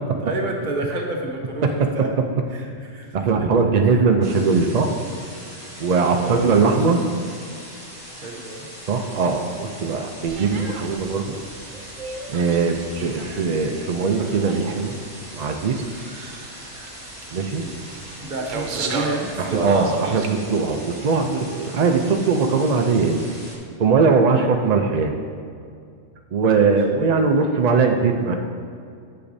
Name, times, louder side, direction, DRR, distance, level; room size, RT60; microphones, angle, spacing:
voice 1, 0.2-2.1 2.5-3.5 3.9-4.0 5.6-5.7 6.0-7.0 8.2-8.7 17.6-17.8 18.2-19.7 24.4-24.6 26.6-26.7, right 1 dB, 45° right, 0 dB, 1.0 m, -30 dB
voice 2, 3.1-4.9 5.8-7.0 8.9-11.4 12.3-15.0 15.3-15.8 17.3-17.6 19.4-23.2 23.8-25.1 26.3-28.4, right 4 dB, 65° right, 4 dB, 0.4 m, -20 dB
sound 1, 4.2-23.6, equal, 10° right, 1.6 m, -40 dB
sound 2, 10.3-20.3, right 4 dB, 85° right, 1.1 m, -35 dB
9.9 x 6.8 x 2.7 m, 2.4 s
omnidirectional pair, 1.3 m